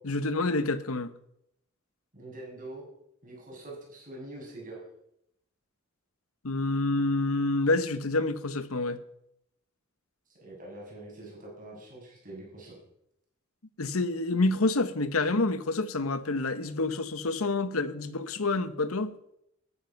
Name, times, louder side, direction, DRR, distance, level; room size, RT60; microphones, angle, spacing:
voice 1, 0.0-1.1 6.4-9.0 13.8-19.2, left 2 dB, 90° left, 1.1 m, -28 dB
voice 2, 2.1-2.8 3.2-4.8 10.4-12.8, right 1 dB, 40° right, 6.6 m, -44 dB
13.5 x 12.5 x 5.9 m
head